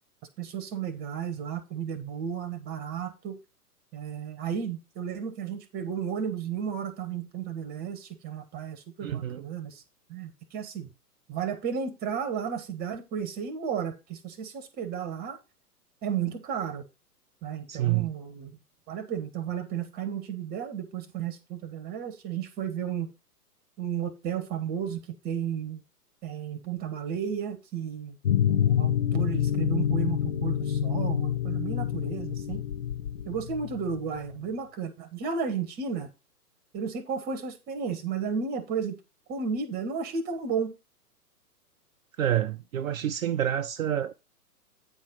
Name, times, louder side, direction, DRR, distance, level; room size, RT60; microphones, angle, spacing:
voice 1, 0.4-3.4 3.9-9.8 10.1-10.9 11.3-15.4 16.0-16.8 17.4-18.5 18.9-23.1 23.8-25.8 26.2-28.2 28.5-32.6 33.2-36.1 36.7-39.0 39.3-40.7, right 7 dB, 20° right, 1.3 m, -33 dB
voice 2, 9.0-9.4 17.7-18.1 42.2-44.1, right 11 dB, 60° right, 0.6 m, -28 dB
sound 1, 28.2-34.2, left 10 dB, 35° left, 0.4 m, -27 dB
9.0 x 4.3 x 5.4 m
figure-of-eight pair, 115°, 46 cm